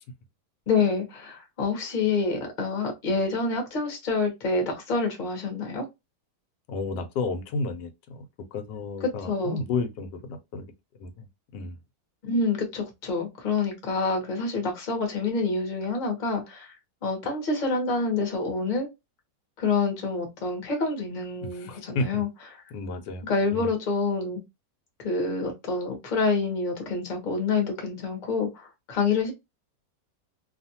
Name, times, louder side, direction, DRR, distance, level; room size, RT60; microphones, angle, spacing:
voice 1, 0.7-5.9 9.3-9.6 12.2-16.7 17.0-18.9 19.6-22.3 23.3-24.4 25.0-29.3, left 4 dB, 35° left, 0.9 m, -27 dB
voice 2, 6.7-10.7 11.0-11.3 11.5-11.8 21.4-22.3 22.7-23.3 23.5-23.7, left 3 dB, 85° left, 1.2 m, -32 dB
2.7 x 2.4 x 2.7 m
omnidirectional pair, 1.8 m